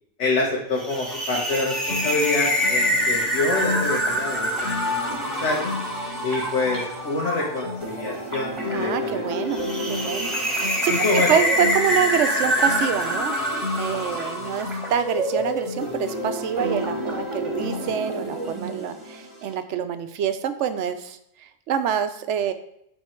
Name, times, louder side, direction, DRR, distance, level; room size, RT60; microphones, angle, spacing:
voice 1, 0.2-5.7 6.2-9.2 10.9-11.3, left 2 dB, 70° left, -3 dB, 1.4 m, -26 dB
sound 1, 0.8-15.1, equal, ahead, 1.3 m, -26 dB
Acoustic guitar, 1.9-17.9, left 3 dB, 50° left, 2.8 m, -37 dB
sound 2, 3.6-19.6, equal, 25° right, 1.2 m, -32 dB
voice 2, 8.7-9.6 9.9-10.3 10.6-10.9 11.3-22.5, right 8 dB, 75° right, 10 dB, 0.9 m, -26 dB
8.9 x 3.2 x 4.4 m, 0.76 s
omnidirectional pair, 1.2 m